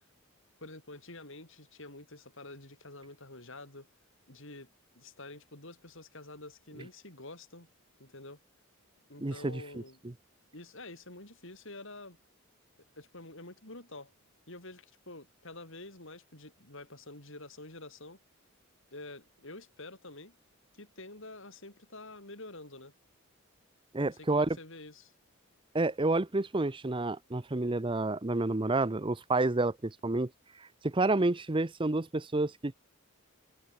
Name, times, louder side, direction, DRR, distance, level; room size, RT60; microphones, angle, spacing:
voice 1, 0.6-3.9 4.3-4.7 5.0-7.7 8.0-8.4 9.1-10.0 10.5-12.2 13.0-14.1 14.5-18.2 18.9-20.3 20.8-22.9 24.0-25.1, left 2 dB, 60° left, 7.2 m, -48 dB
voice 2, 9.2-9.6 23.9-24.6 25.7-30.3 30.8-32.7, right 2 dB, 25° right, 0.7 m, -29 dB
head